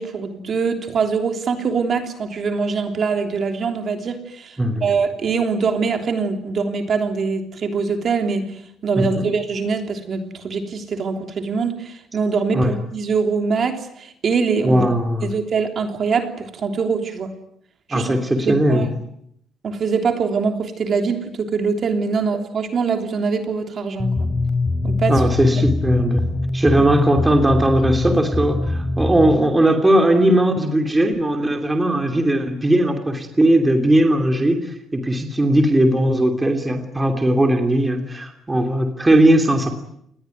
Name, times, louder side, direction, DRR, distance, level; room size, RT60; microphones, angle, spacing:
voice 1, 0.0-14.8 15.2-17.3 17.9-18.1 18.4-19.0 19.6-24.3 24.8-25.2 25.5-25.6, right 5 dB, 40° right, 6 dB, 3.4 m, -23 dB
voice 2, 9.0-9.3 12.5-12.7 14.6-15.3 17.9-18.9 25.1-26.2 26.5-39.7, right 1 dB, 10° right, 5 dB, 3.0 m, -18 dB
sound 1, 24.0-29.3, left 2 dB, 15° left, 4.9 m, -23 dB
29.5 x 21.0 x 9.3 m, 0.72 s
cardioid pair, 165°, 0 cm